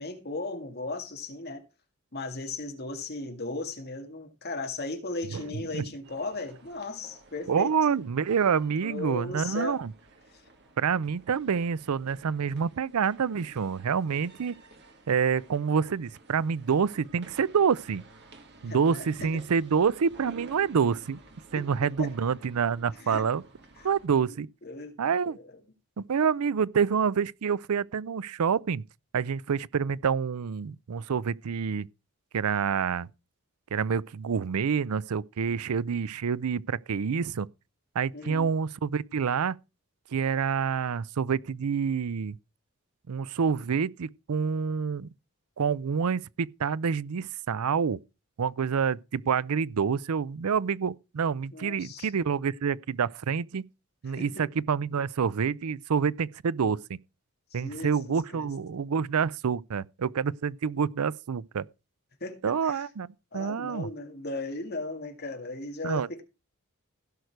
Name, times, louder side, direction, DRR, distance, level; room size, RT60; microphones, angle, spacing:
voice 1, 0.0-1.6 2.1-7.7 8.8-9.8 10.3-10.4 18.6-19.3 21.6-21.7 22.0-22.1 23.0-23.3 24.6-24.9 25.2-25.4 38.1-38.5 51.5-52.1 54.1-54.5 57.5-58.4 62.2-62.8 63.3-66.2, left 2 dB, 45° left, 2.0 m, -36 dB
voice 2, 5.3-5.9 7.5-9.9 10.8-14.5 15.1-18.0 18.6-21.2 21.5-23.4 23.8-24.5 25.0-25.4 26.0-28.8 29.1-31.9 32.3-33.1 33.7-37.5 37.9-39.6 40.1-42.4 43.1-45.1 45.6-48.0 48.4-53.6 54.0-57.0 57.5-61.6 62.4-63.9 65.8-66.2, right 6 dB, 90° right, 0.5 m, -27 dB
sound 1, 6.0-24.1, right 2 dB, 50° right, 2.3 m, -53 dB
16.0 x 6.5 x 4.6 m
head